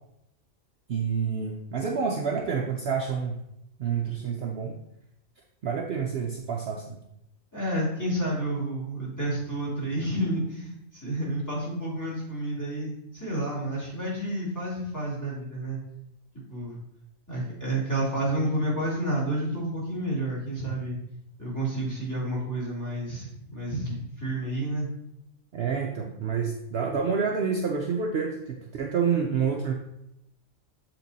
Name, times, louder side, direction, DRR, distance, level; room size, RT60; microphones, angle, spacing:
voice 1, 0.9-3.4 3.8-4.8 5.6-7.0 25.5-29.7, right 6 dB, 55° right, 1 dB, 0.8 m, -28 dB
voice 2, 7.5-15.8 16.5-16.7 17.3-21.0 21.4-24.9, right 1 dB, 15° left, -6 dB, 2.8 m, -30 dB
7.4 x 4.5 x 4.0 m, 0.82 s
omnidirectional pair, 1.4 m